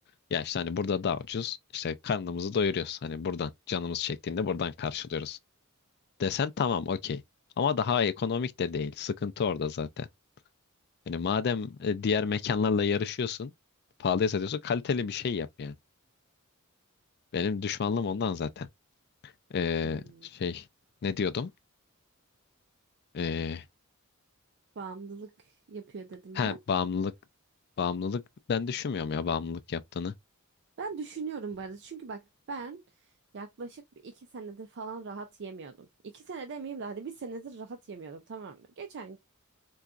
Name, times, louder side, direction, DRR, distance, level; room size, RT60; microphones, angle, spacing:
voice 1, 0.3-5.4 6.2-7.2 7.6-10.1 11.1-13.5 14.0-15.7 17.3-18.7 19.5-20.6 21.0-21.5 23.1-23.6 26.4-27.1 27.8-28.2 28.5-30.1, left 6 dB, 50° left, 0.4 m, -30 dB
voice 2, 19.8-20.3 24.8-26.6 30.8-32.8 33.3-39.2, right 4 dB, 55° right, 0.4 m, -41 dB
3.9 x 2.3 x 2.3 m
head